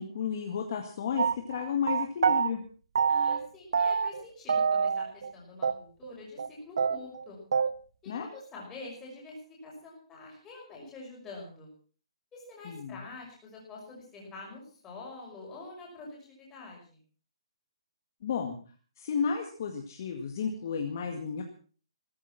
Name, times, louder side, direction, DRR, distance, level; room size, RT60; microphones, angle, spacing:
voice 1, 0.0-2.6 8.1-8.3 12.7-13.0 18.2-18.6 19.0-21.4, left 6 dB, 35° left, 3 dB, 2.0 m, -32 dB
sound 1, 1.2-2.5 3.0-3.5 3.7-4.2 4.5-5.3 5.6-5.7 6.0-6.1 6.4-6.5 6.8-7.7, right 6 dB, 55° right, 1.1 m, -26 dB
voice 2, 3.1-6.4 6.7-7.4 8.0-11.7 12.3-17.0, left 2 dB, 10° left, -3 dB, 5.9 m, -46 dB
16.5 x 14.5 x 6.0 m, 0.41 s
hypercardioid pair, 180°, 3 cm